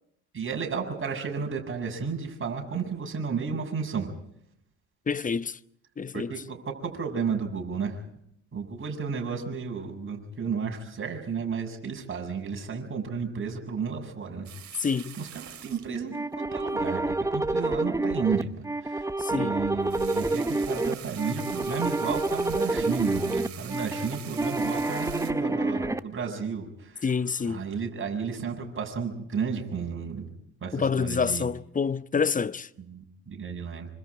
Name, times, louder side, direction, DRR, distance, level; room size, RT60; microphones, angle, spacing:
voice 1, 0.3-4.1 6.1-8.0 8.5-14.5 14.7-14.9 15.1-27.1 27.4-30.3 30.6-31.5 32.8-33.9, right 5 dB, 35° right, 7.2 m, -33 dB
voice 2, 5.1-5.6 6.0-6.3 14.8-15.2 19.2-19.6 27.0-27.6 30.7-32.7, left 5 dB, 25° left, 0.8 m, -27 dB
sound 1, 14.4-17.0 19.7-25.3, right 10 dB, 55° right, 3.0 m, -44 dB
sound 2, 16.1-26.0, right 2 dB, 10° right, 0.9 m, -28 dB
26.5 x 25.5 x 5.0 m
hypercardioid pair, 60°, 34 cm